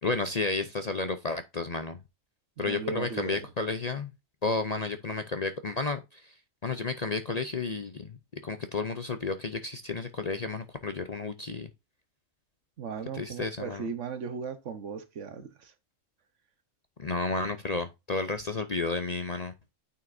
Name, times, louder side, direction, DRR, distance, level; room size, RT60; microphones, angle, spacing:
voice 1, 0.0-2.0 2.6-4.1 4.4-6.3 6.6-8.2 8.4-11.7 13.1-13.9 17.0-19.5, left 3 dB, 40° left, 0.6 m, -32 dB
voice 2, 2.6-3.5 12.8-15.7, right 6 dB, 65° right, 1.4 m, -37 dB
9.3 x 5.6 x 2.6 m
omnidirectional pair, 1.4 m